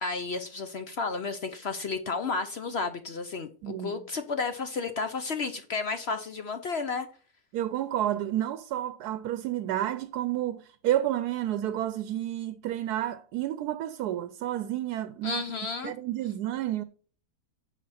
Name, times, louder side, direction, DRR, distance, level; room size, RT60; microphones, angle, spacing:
voice 1, 0.0-7.1 15.2-15.9, left 4 dB, 55° left, 0.8 m, -32 dB
voice 2, 3.6-4.0 7.5-15.4 15.8-16.8, right 12 dB, 85° right, 1.1 m, -30 dB
9.1 x 5.5 x 4.2 m
omnidirectional pair, 1.7 m